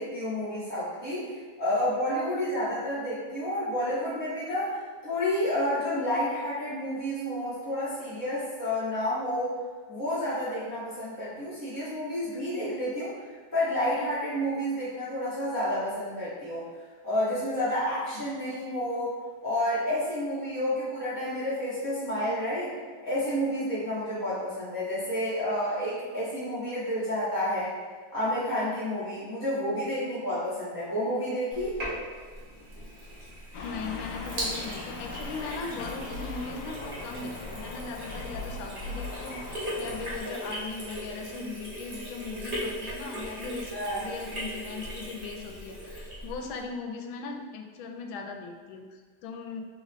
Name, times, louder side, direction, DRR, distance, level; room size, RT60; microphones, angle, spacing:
voice 1, 0.0-9.5 9.9-13.1 13.5-16.7 17.0-19.1 19.4-22.7 23.0-27.7 28.1-31.8 43.7-44.0, left 1 dB, 10° right, -13 dB, 1.3 m, -30 dB
Sink (filling or washing), 31.5-46.6, equal, 30° right, 1.1 m, -39 dB
sound 1, 33.5-40.2, left 3 dB, 70° left, 1.1 m, -40 dB
voice 2, 33.6-49.6, left 4 dB, 90° left, 3 dB, 1.4 m, -39 dB
4.0 x 3.8 x 3.0 m, 1.5 s
omnidirectional pair, 2.1 m